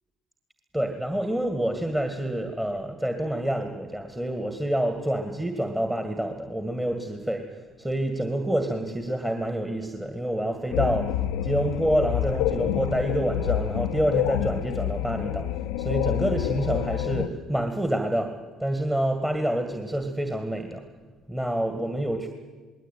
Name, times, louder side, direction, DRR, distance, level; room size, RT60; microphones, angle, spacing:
voice 1, 0.7-11.2 11.4-15.5 15.8-20.9 21.3-22.3, right 1 dB, 10° right, 6 dB, 2.1 m, -27 dB
sound 1, 10.7-17.3, left 12 dB, 80° left, 0.7 m, -28 dB
19.5 x 18.0 x 9.3 m, 1.4 s
hypercardioid pair, 60°, 0 cm